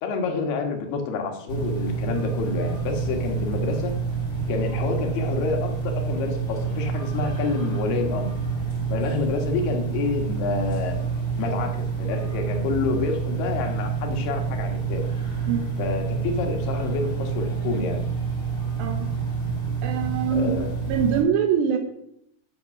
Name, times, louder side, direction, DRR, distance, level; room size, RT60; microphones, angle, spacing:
voice 1, 0.0-4.0 4.5-8.3 8.9-11.0 11.4-15.1 15.8-18.0 20.3-20.7, left 4 dB, 70° left, 2 dB, 3.4 m, -28 dB
sound 1, 1.5-21.2, right 5 dB, 15° left, 2.7 m, -28 dB
voice 2, 18.8-19.1 19.8-20.5 20.9-21.8, right 7 dB, 80° right, 5 dB, 3.2 m, -23 dB
11.0 x 7.0 x 6.0 m, 0.73 s
omnidirectional pair, 5.0 m